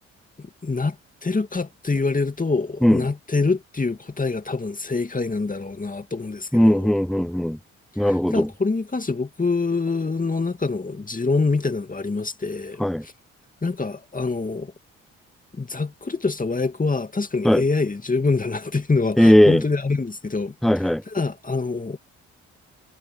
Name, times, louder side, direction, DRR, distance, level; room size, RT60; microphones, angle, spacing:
voice 1, 0.4-1.0 1.2-6.9 8.0-13.1 13.6-14.7 15.5-20.5 21.1-22.0, left 3 dB, 25° left, 2.6 m, -25 dB
voice 2, 6.5-7.6 8.0-8.5 12.8-13.0 17.4-17.6 19.2-19.6 20.6-21.0, equal, ahead, 0.7 m, -17 dB
supercardioid pair, 50°, 32 cm